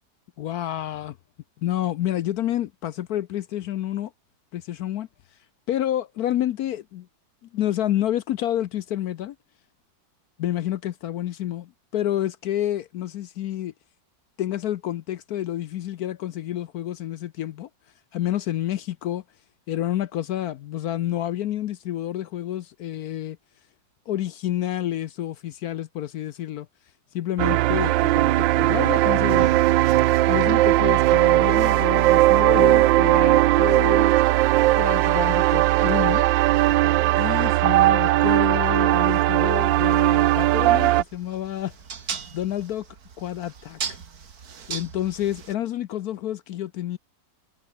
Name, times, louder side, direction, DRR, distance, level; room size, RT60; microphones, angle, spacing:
voice 1, 0.4-1.2 1.6-4.1 4.5-5.4 5.7-7.1 7.5-9.4 10.4-13.7 14.4-17.7 18.1-19.2 19.7-23.4 24.1-26.7 27.1-29.5 30.2-34.1 34.8-36.3 37.2-41.7 42.0-42.9 43.2-44.0 44.7-47.0, left 12 dB, 65° left, 1.0 m, -29 dB
sound 1, 27.4-41.0, right 17 dB, 80° right, 1.3 m, -18 dB
sound 2, 29.3-45.6, right 6 dB, 55° right, 2.2 m, -41 dB
omnidirectional pair, 2.0 m